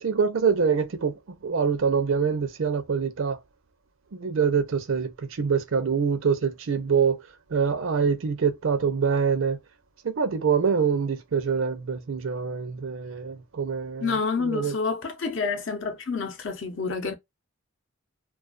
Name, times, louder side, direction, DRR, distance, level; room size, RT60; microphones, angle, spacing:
voice 1, 0.0-3.4 4.1-7.2 7.5-9.6 10.0-14.7, right 6 dB, 70° right, 0.5 m, -25 dB
voice 2, 14.0-17.1, left 4 dB, 60° left, 0.7 m, -28 dB
2.3 x 2.3 x 2.3 m
head